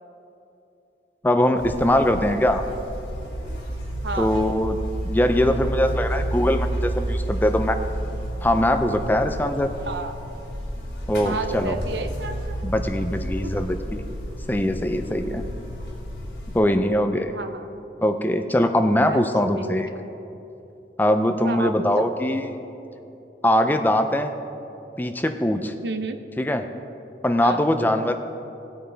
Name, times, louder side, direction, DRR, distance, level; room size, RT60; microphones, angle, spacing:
voice 1, 1.2-2.6 4.2-4.8 5.0-7.8 8.4-9.7 11.1-11.8 12.6-14.0 14.5-15.4 16.5-17.4 18.0-19.9 21.0-22.5 23.4-24.3 25.0-25.7 26.4-26.6 27.2-28.1, left 1 dB, 10° left, 7 dB, 0.4 m, -22 dB
Buzz, 1.6-16.6, right 1 dB, 70° left, 2.7 m, -31 dB
voice 2, 4.0-4.3 9.9-10.1 11.2-12.6 13.4-13.5 17.3-17.7 19.1-19.2 19.6-20.0 21.4-22.1 25.8-26.2 27.4-27.6, right 3 dB, 75° right, 8 dB, 0.7 m, -31 dB
18.0 x 8.7 x 3.4 m, 2.8 s
head